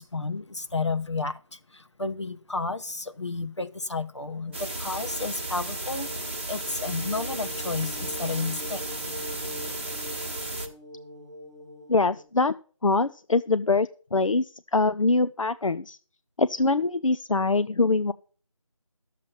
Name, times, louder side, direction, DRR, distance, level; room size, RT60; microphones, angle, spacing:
voice 1, 0.0-8.8, left 3 dB, 60° left, 10 dB, 1.2 m, -32 dB
sound 1, 4.3-12.2, left 1 dB, 5° left, 0.8 m, -43 dB
sound 2, 4.5-10.7, right 2 dB, 20° right, 1.1 m, -34 dB
voice 2, 11.9-12.5 12.8-16.0 16.4-18.1, left 3 dB, 75° left, 11 dB, 0.6 m, -24 dB
10.5 x 7.5 x 5.8 m, 0.40 s
figure-of-eight pair, 175°, 17 cm